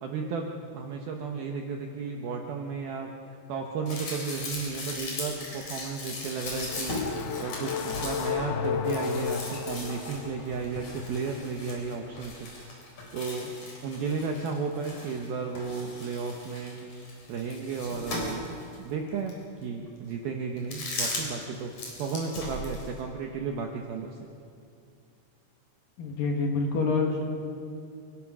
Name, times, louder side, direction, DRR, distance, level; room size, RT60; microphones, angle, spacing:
voice 1, 0.0-7.0 7.4-13.5 13.8-16.9 17.3-18.5 18.8-21.7 22.0-24.3, right 5 dB, 70° right, 2 dB, 2.5 m, -34 dB
sound 1, 3.9-15.3 15.5-18.8 19.3-19.4 20.6-21.4 21.7-23.0, left 2 dB, 40° left, 5.3 m, -38 dB
sound 2, 6.2-10.5, left 8 dB, 80° left, 2.3 m, -33 dB
voice 2, 26.0-27.2, left 4 dB, 60° left, 1 dB, 3.0 m, -26 dB
27.5 x 17.5 x 6.2 m, 2.5 s
omnidirectional pair, 5.3 m